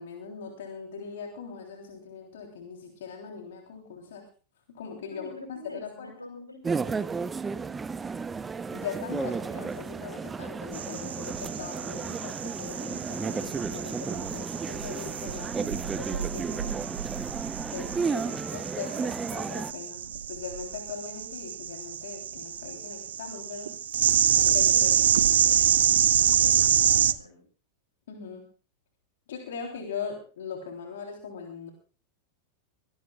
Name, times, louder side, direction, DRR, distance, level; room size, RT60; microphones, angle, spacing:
voice 1, 0.0-4.2 4.7-6.1 8.7-16.9 17.7-23.7 24.5-24.9 28.1-28.4 29.3-31.7, left 6 dB, 60° left, 2 dB, 3.4 m, -40 dB
voice 2, 5.1-7.3 18.1-18.4 18.8-19.0 24.5-27.4, left 1 dB, 85° left, 5 dB, 5.5 m, -45 dB
sound 1, 6.6-19.7, right 5 dB, 15° right, 0.8 m, -33 dB
sound 2, 10.7-27.1, right 9 dB, 65° right, 0.8 m, -27 dB
24.5 x 18.0 x 2.4 m, 0.38 s
figure-of-eight pair, 90°, 0 cm